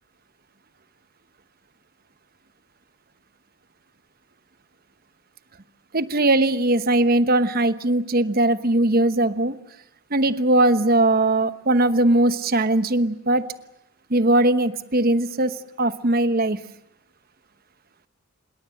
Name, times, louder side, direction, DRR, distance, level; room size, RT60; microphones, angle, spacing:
voice 1, 5.9-9.5 10.1-13.5 14.1-16.6, right 2 dB, 40° right, 12 dB, 1.1 m, -20 dB
26.5 x 22.0 x 7.8 m, 0.83 s
head